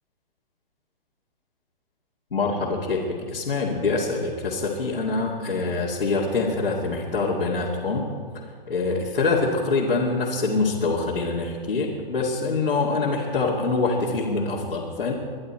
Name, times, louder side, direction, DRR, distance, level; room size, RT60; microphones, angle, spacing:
voice 1, 2.3-3.0 3.3-8.0 8.7-15.1, left 3 dB, 90° left, -5 dB, 2.4 m, -25 dB
23.0 x 11.5 x 4.4 m, 2.1 s
hypercardioid pair, 135°, 29 cm